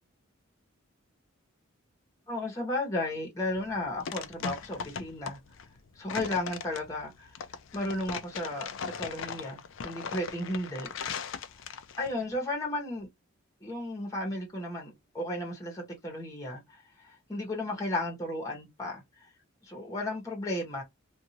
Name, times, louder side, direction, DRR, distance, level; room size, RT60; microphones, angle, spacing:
voice 1, 2.3-5.4 5.9-7.3 7.7-8.7 9.0-10.9 12.0-13.1 13.6-16.8 17.0-19.0 19.6-20.8, left 1 dB, 15° left, 1.1 m, -34 dB
sound 1, 3.5-12.1, left 6 dB, 65° left, 0.4 m, -39 dB
2.6 x 2.5 x 2.8 m
head